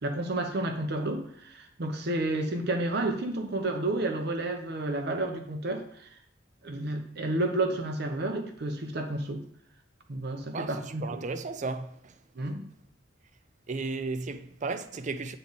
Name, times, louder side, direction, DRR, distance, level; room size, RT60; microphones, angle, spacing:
voice 1, 0.0-6.1 6.6-9.4 10.1-11.2 12.4-12.6, right 2 dB, 60° right, 0.8 m, -31 dB
voice 2, 10.5-12.1 13.7-15.4, right 3 dB, 40° right, 0.4 m, -34 dB
8.5 x 3.4 x 4.0 m
head